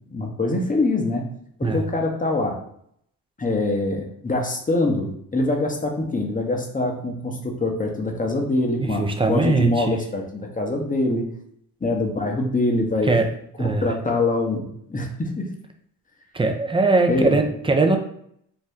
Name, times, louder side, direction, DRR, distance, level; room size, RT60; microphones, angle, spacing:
voice 1, 0.1-1.3 1.6-2.6 3.4-11.3 11.8-13.1 13.6-15.4 17.1-17.4, left 2 dB, 20° left, 2 dB, 0.7 m, -24 dB
voice 2, 8.8-10.0 13.1-13.3 13.6-13.9 16.3-18.0, right 3 dB, 15° right, 5 dB, 0.4 m, -20 dB
2.7 x 2.2 x 3.5 m, 0.69 s
supercardioid pair, 50°, 44 cm